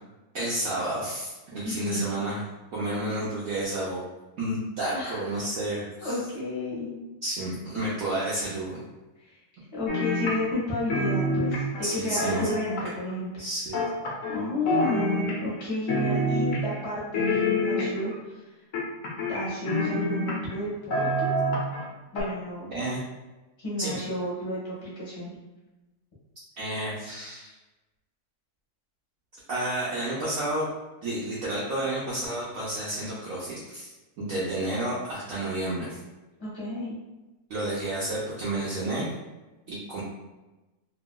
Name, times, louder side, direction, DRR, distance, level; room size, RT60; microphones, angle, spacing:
voice 1, 0.3-2.5 2.7-4.0 4.4-6.1 7.2-8.8 11.8-12.5 13.4-13.8 22.7-23.0 23.8-23.9 26.6-27.5 29.5-30.6 31.0-33.9 34.2-36.0 37.5-39.1 39.7-40.0, right 1 dB, 65° right, -8 dB, 0.9 m, -30 dB
voice 2, 1.6-2.0 4.9-5.2 6.0-7.0 9.2-9.4 9.7-13.4 14.3-18.6 19.3-21.3 22.1-22.7 23.6-25.3 36.4-37.0, left 1 dB, 20° left, -7 dB, 0.9 m, -31 dB
sound 1, 9.9-10.6 10.9-13.1 13.7-14.4 14.7-15.6 15.9-16.8 17.1-18.1 18.7-20.6 20.9-21.8 22.2-22.3, left 1 dB, 65° left, 0.8 m, -27 dB
2.9 x 2.7 x 2.2 m, 1.1 s
omnidirectional pair, 1.9 m